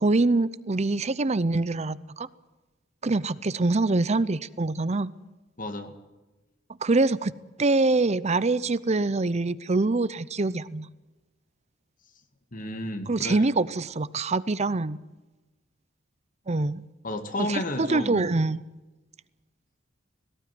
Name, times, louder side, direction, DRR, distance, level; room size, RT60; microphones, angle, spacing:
voice 1, 0.0-2.3 3.0-5.1 6.8-7.3 7.6-10.9 13.1-15.0 16.5-16.8 17.4-18.6, right 3 dB, 35° right, 17 dB, 0.7 m, -24 dB
voice 2, 5.6-6.0 12.5-13.4 17.0-18.3, left 1 dB, 45° left, 7 dB, 2.4 m, -32 dB
18.0 x 18.0 x 9.6 m, 1.1 s
head